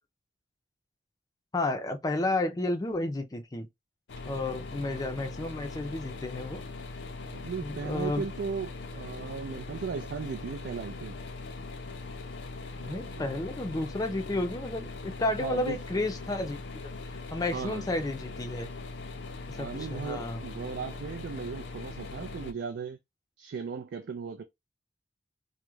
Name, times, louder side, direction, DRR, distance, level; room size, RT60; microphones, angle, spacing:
voice 1, 1.5-3.7 4.2-6.6 7.6-8.3 12.8-16.6 17.3-18.7 19.5-20.4, left 2 dB, 20° left, 0.4 m, -32 dB
sound 1, 4.1-22.5, left 3 dB, 80° left, 0.5 m, -41 dB
voice 2, 7.3-11.2 12.8-13.2 15.4-15.8 17.5-17.9 19.6-23.0 23.4-24.4, right 5 dB, 75° right, 0.3 m, -37 dB
2.3 x 2.1 x 3.0 m
head